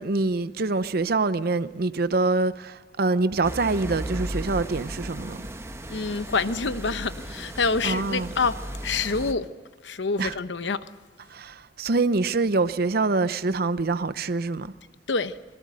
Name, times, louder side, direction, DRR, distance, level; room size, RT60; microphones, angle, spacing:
voice 1, 0.0-5.4 7.8-8.3 10.2-10.4 11.3-14.7, right 3 dB, 60° right, 0.8 m, -25 dB
sound 1, 3.4-9.3, right 1 dB, 15° right, 1.1 m, -35 dB
voice 2, 5.9-9.5 9.8-10.9 15.1-15.4, left 4 dB, 90° left, 0.9 m, -27 dB
26.0 x 21.5 x 6.5 m
head